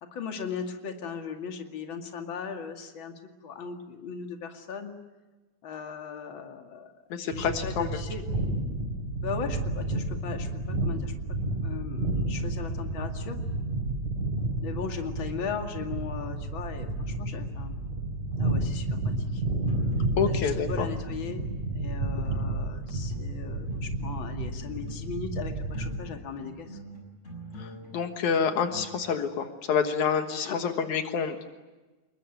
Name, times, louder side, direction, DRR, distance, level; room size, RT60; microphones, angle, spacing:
voice 1, 0.0-4.9 5.6-6.9 7.2-8.2 9.2-11.1 11.6-13.4 14.6-17.8 18.4-19.4 20.2-21.5 21.7-26.8 30.4-30.6, left 6 dB, 45° left, 4 dB, 2.8 m, -38 dB
voice 2, 7.1-8.0 20.2-20.9 27.6-31.4, left 6 dB, 80° left, 7 dB, 2.9 m, -28 dB
sound 1, 7.3-26.0, right 2 dB, 85° right, 6.2 m, -31 dB
sound 2, 19.5-20.6 21.0-21.8 22.2-25.2 25.5-28.9, equal, 20° left, 6.8 m, -46 dB
27.5 x 22.0 x 9.3 m, 1.2 s
omnidirectional pair, 3.4 m